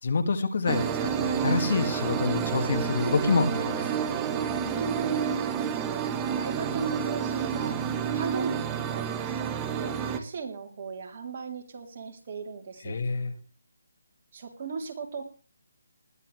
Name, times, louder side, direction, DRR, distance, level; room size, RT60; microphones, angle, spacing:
voice 1, 0.0-3.9 12.8-13.3, left 4 dB, 55° left, 8 dB, 2.2 m, -27 dB
sound 1, 0.7-10.2, right 7 dB, 15° right, 1.0 m, -29 dB
voice 2, 4.6-5.2 5.7-12.9 14.3-15.2, right 5 dB, 40° right, 2 dB, 3.3 m, -37 dB
20.5 x 13.0 x 3.3 m, 0.35 s
hypercardioid pair, 165°, 0 cm